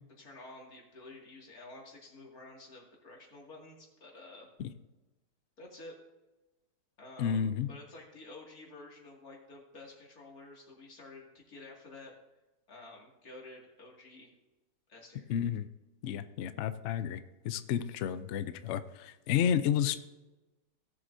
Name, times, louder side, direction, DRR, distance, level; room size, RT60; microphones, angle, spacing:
voice 1, 0.2-4.5 5.6-6.0 7.0-12.1 12.7-14.3 14.9-15.3, left 2 dB, 55° left, -2 dB, 2.8 m, -51 dB
voice 2, 7.2-7.7 15.3-15.7 16.0-19.9, left 9 dB, 85° left, 12 dB, 0.6 m, -31 dB
17.0 x 7.8 x 2.6 m, 1.1 s
omnidirectional pair, 1.9 m